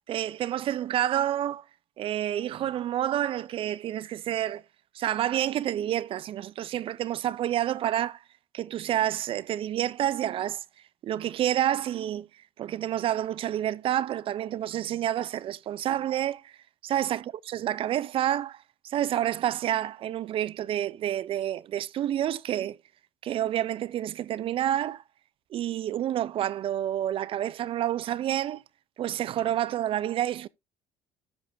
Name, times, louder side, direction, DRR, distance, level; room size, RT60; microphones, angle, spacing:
voice 1, 0.1-1.6 2.0-4.6 4.9-8.2 8.5-10.6 11.0-12.3 12.6-16.5 16.8-22.8 23.2-25.0 25.5-28.6 29.0-30.5, right 12 dB, 50° right, 0.5 m, -29 dB
14.5 x 5.6 x 2.6 m
supercardioid pair, 90°, 12 cm